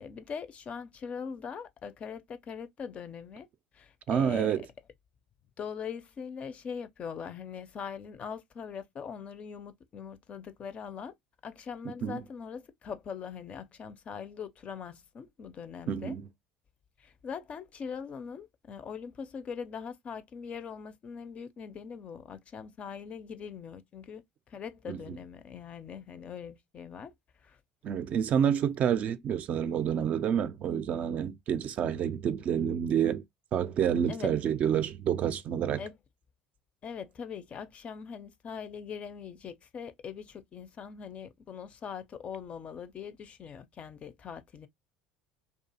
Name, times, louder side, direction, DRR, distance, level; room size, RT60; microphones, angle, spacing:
voice 1, 0.0-3.5 3.7-4.6 5.6-11.1 11.4-16.2 17.0-24.2 24.5-27.1 27.4-27.6 34.1-34.3 35.8-36.0 36.8-44.7, left 6 dB, 40° left, 0.4 m, -41 dB
voice 2, 4.1-4.7 12.0-12.2 15.9-16.3 24.9-25.2 27.8-33.2 33.5-35.8, right 8 dB, 45° right, 0.3 m, -28 dB
2.4 x 2.3 x 2.7 m
hypercardioid pair, 75°, 3 cm